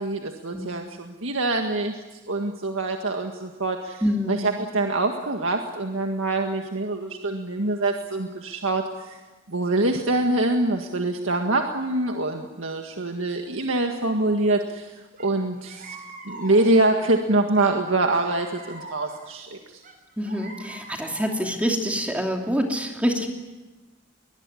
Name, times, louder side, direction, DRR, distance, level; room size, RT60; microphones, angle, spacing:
voice 1, 0.0-4.0 4.3-16.0 16.2-19.8, right 2 dB, 80° right, 3 dB, 1.8 m, -25 dB
voice 2, 4.0-4.4 20.2-23.3, equal, 5° right, 2 dB, 2.8 m, -26 dB
sound 1, 15.2-15.3 15.6-17.0 17.6-19.3 19.8-21.6, right 2 dB, 40° right, 6.2 m, -43 dB
22.0 x 21.0 x 9.8 m, 1.2 s
head